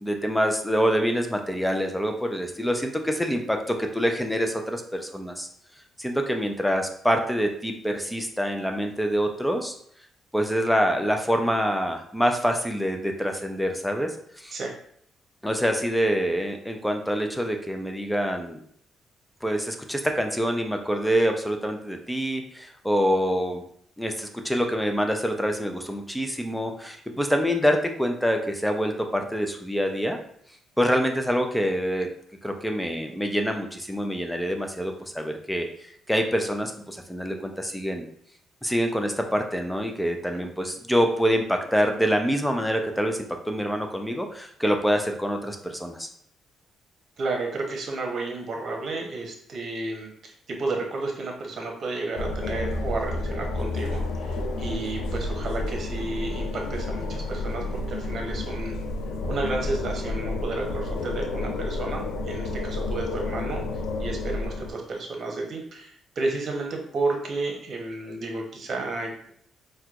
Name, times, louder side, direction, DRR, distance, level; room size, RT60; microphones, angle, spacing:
voice 1, 0.0-5.5 6.0-9.7 10.3-14.6 15.4-18.6 19.4-23.6 24.0-30.2 30.8-32.1 32.4-38.0 38.6-43.2 43.5-46.1, equal, 5° left, 4 dB, 0.5 m, -26 dB
voice 2, 47.2-58.8 59.3-63.6 64.0-69.3, right 3 dB, 55° right, 1 dB, 0.9 m, -32 dB
sound 1, 52.2-64.7, left 2 dB, 90° left, 0.4 m, -30 dB
4.3 x 2.3 x 2.4 m, 0.65 s
cardioid pair, 90°, 0 cm